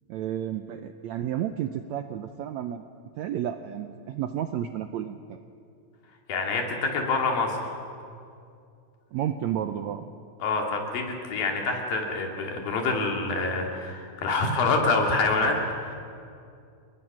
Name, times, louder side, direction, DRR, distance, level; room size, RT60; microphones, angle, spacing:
voice 1, 0.1-2.8 3.2-5.4 9.1-10.0, right 10 dB, 80° right, 8 dB, 1.6 m, -31 dB
voice 2, 6.3-7.6 10.4-16.0, left 3 dB, 80° left, 2 dB, 4.3 m, -26 dB
28.0 x 21.5 x 6.2 m, 2.4 s
omnidirectional pair, 4.0 m